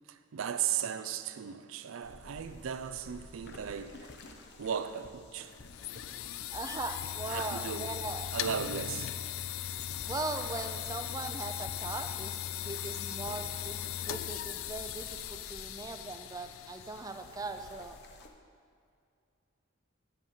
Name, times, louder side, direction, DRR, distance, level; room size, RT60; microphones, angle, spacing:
voice 1, 0.1-4.2 4.6-5.6 7.3-7.9 8.3-9.1 13.3-13.4, right 8 dB, 80° right, 0.4 m, -36 dB
sound 1, 2.0-18.3, left 3 dB, 55° left, 0.8 m, -52 dB
sound 2, 5.4-18.2, left 11 dB, 80° left, 0.4 m, -39 dB
voice 2, 6.5-8.3 10.0-18.0, right 3 dB, 20° right, 0.4 m, -40 dB
7.6 x 6.4 x 7.4 m
head